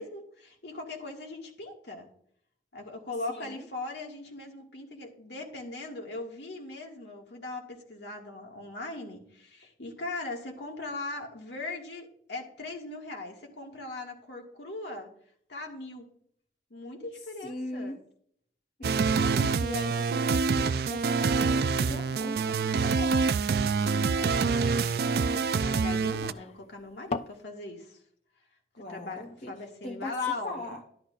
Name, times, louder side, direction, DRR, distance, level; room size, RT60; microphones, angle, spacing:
voice 1, 0.0-2.1 2.7-15.1 15.5-16.1 16.7-18.0 23.8-28.0 28.9-30.7, left 3 dB, 80° left, 1 dB, 1.9 m, -39 dB
voice 2, 3.3-3.7 17.4-18.0 18.8-23.2 28.8-29.5 29.8-30.8, left 2 dB, 55° left, 0 dB, 1.2 m, -40 dB
sound 1, 18.8-26.3, right 5 dB, 60° right, 0.3 m, -26 dB
sound 2, 20.9-27.4, left 4 dB, 35° left, 0.3 m, -43 dB
11.5 x 11.0 x 2.5 m, 0.64 s
head